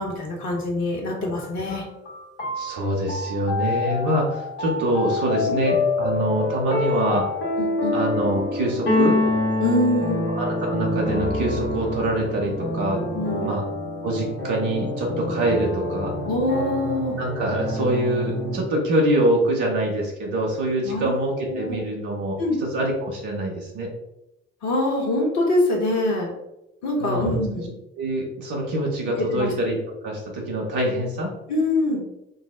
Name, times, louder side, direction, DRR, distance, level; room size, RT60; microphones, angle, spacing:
voice 1, 0.0-1.8 5.5-5.6 7.6-8.0 9.6-10.3 13.1-13.6 16.2-17.2 20.8-21.1 21.5-21.8 22.4-22.6 24.6-26.3 26.8-27.7 29.2-29.5 31.5-32.0, left 1 dB, 60° left, -2 dB, 1.4 m, -24 dB
sound 1, 1.4-18.6, left 2 dB, 75° left, 1.4 m, -27 dB
voice 2, 2.6-7.3 7.9-9.2 10.3-13.0 13.4-13.6 14.0-16.1 17.2-23.9 27.0-27.4 28.0-29.8 30.0-31.3, right 1 dB, 65° right, -1 dB, 1.3 m, -25 dB
5.3 x 2.0 x 3.8 m, 0.88 s
figure-of-eight pair, 45°, 32 cm